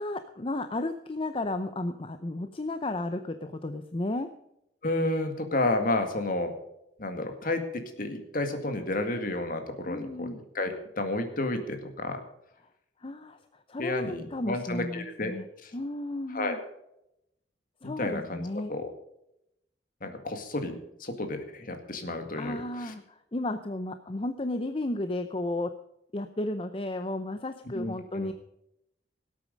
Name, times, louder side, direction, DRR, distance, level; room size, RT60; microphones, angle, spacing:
voice 1, 0.0-4.3 9.9-10.4 13.0-15.5 15.7-16.6 17.8-18.7 22.4-25.7 26.1-28.3, left 2 dB, 30° left, 9 dB, 0.6 m, -33 dB
voice 2, 4.8-6.5 7.0-10.3 10.5-12.2 13.8-15.3 15.6-15.7 16.3-16.6 17.8-18.9 20.0-20.7 21.0-22.9 27.7-28.3, left 2 dB, 50° left, 6 dB, 2.0 m, -31 dB
18.0 x 8.5 x 5.3 m, 0.82 s
head